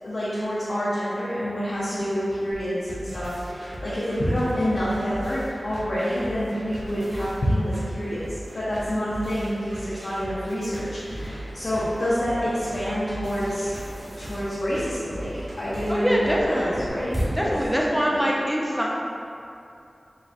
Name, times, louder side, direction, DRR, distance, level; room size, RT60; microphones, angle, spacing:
voice 1, 0.0-13.7 14.2-17.5, equal, 70° left, -11 dB, 0.6 m, -27 dB
sound 1, 2.5-16.9, right 1 dB, 70° right, 0.5 m, -38 dB
sound 2, 10.9-17.9, equal, 35° right, 1.1 m, -37 dB
voice 2, 15.9-16.7 17.4-18.9, equal, ahead, -3 dB, 0.5 m, -23 dB
3.9 x 2.1 x 2.5 m, 2.6 s
wide cardioid pair, 70°, 0 cm